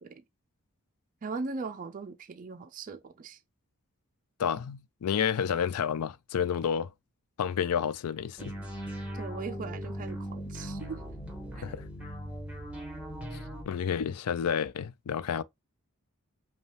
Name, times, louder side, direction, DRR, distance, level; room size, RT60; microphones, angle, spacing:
voice 1, 1.2-3.4 9.1-11.0 11.5-11.7, right 4 dB, 40° right, 0.4 m, -39 dB
voice 2, 4.4-6.9 7.4-8.5 11.6-11.8 13.3-13.4 13.7-15.4, left 7 dB, 80° left, 0.4 m, -30 dB
sound 1, 8.4-13.6, equal, 5° right, 1.4 m, -39 dB
5.3 x 2.3 x 3.3 m
head